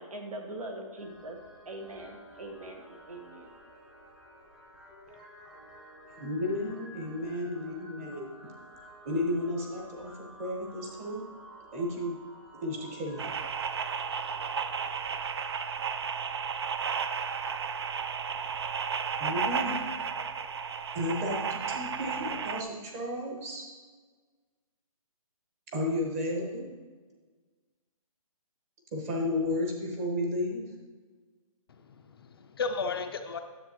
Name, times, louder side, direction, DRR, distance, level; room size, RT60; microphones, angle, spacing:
voice 1, 0.0-1.4 1.6-3.5, right 1 dB, 75° right, 3 dB, 1.5 m, -42 dB
sound 1, 1.0-15.2, right 1 dB, 5° right, 0.9 m, -52 dB
voice 2, 6.2-8.3 9.0-10.1 10.4-11.2 11.7-12.2 12.6-13.3 19.2-19.7 20.9-23.6 25.7-26.7 28.9-30.6, left 1 dB, 25° right, -1 dB, 1.2 m, -32 dB
sound 2, 13.2-22.6, right 6 dB, 45° right, 0.4 m, -33 dB
voice 3, 31.8-33.4, left 4 dB, 40° left, 6 dB, 0.4 m, -34 dB
10.0 x 7.2 x 3.0 m, 1.4 s
hypercardioid pair, 165°, 18 cm